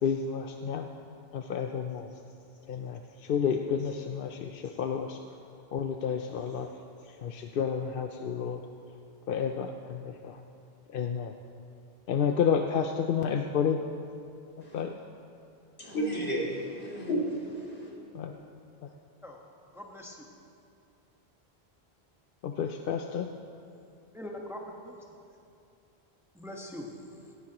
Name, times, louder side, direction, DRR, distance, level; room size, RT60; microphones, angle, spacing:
voice 1, 0.0-0.9 1.3-2.2 2.7-5.2 5.7-6.7 7.0-8.6 9.3-10.4 10.9-11.3 12.1-13.8 14.6-14.9 18.1-18.4 18.8-18.9 22.4-23.3, left 7 dB, 65° left, 5 dB, 0.7 m, -30 dB
voice 2, 15.8-17.9, equal, 85° left, -4 dB, 2.9 m, -32 dB
voice 3, 19.7-20.3 24.1-25.0 26.3-26.9, left 1 dB, 5° right, -1 dB, 1.2 m, -42 dB
17.5 x 15.5 x 3.0 m, 2.6 s
omnidirectional pair, 1.1 m